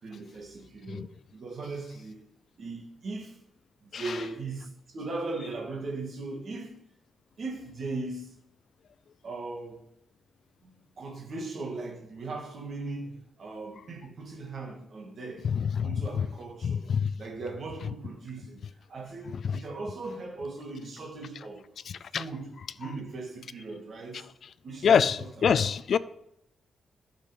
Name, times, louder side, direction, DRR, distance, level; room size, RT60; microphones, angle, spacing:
voice 1, 0.0-2.2 2.6-3.4 3.8-6.8 7.4-8.4 9.2-9.8 10.6-15.5 15.8-16.8 17.2-18.6 18.9-21.6 22.1-24.3 24.6-25.7, right 3 dB, 45° right, 2.2 m, -38 dB
voice 2, 15.5-16.0 16.6-17.1 19.4-19.6 21.9-22.2 24.8-26.0, left 7 dB, 50° left, 0.4 m, -25 dB
12.0 x 6.0 x 5.2 m
wide cardioid pair, 170°, 0 cm